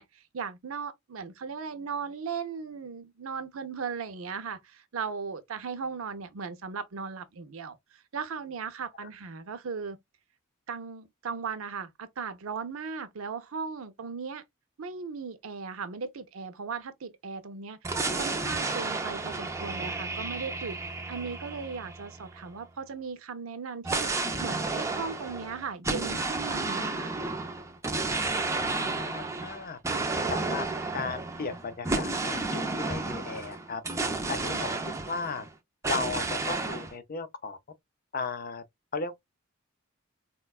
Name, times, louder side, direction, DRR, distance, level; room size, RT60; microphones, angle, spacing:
voice 1, 0.0-10.0 10.7-14.4 14.8-20.8 21.1-27.2 34.5-34.6, right 5 dB, 70° right, 0.6 m, -37 dB
sound 1, 17.8-22.6 23.8-35.5 35.8-36.9, right 3 dB, 15° right, 0.6 m, -32 dB
voice 2, 28.6-29.8 30.3-30.7 30.9-33.8 34.3-34.7 35.0-35.4 35.9-37.6 38.1-38.6 38.9-39.2, left 4 dB, 45° left, 0.6 m, -35 dB
4.3 x 2.2 x 2.3 m
head